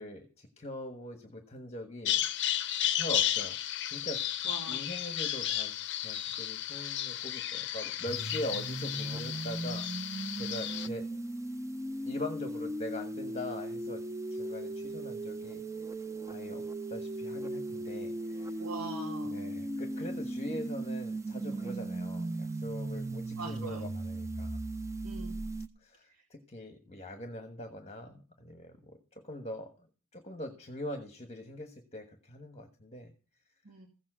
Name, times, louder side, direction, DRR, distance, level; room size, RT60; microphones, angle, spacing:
voice 1, 0.0-2.2 2.9-3.6 3.8-11.1 12.0-14.0 14.3-15.6 16.3-18.6 19.2-24.6 25.8-29.9 30.1-33.1, left 1 dB, 30° left, 5 dB, 1.3 m, -42 dB
Bird vocalization bird call bird song, 2.1-10.9, left 11 dB, 50° left, 0.6 m, -33 dB
voice 2, 4.5-4.8 18.6-19.5 23.4-23.9 25.0-25.4 26.1-26.2 33.6-33.9, right 4 dB, 80° right, -1 dB, 2.4 m, -42 dB
sound 1, 8.0-25.7, right 2 dB, 15° right, 0.6 m, -37 dB
15.5 x 7.4 x 6.2 m, 0.36 s
head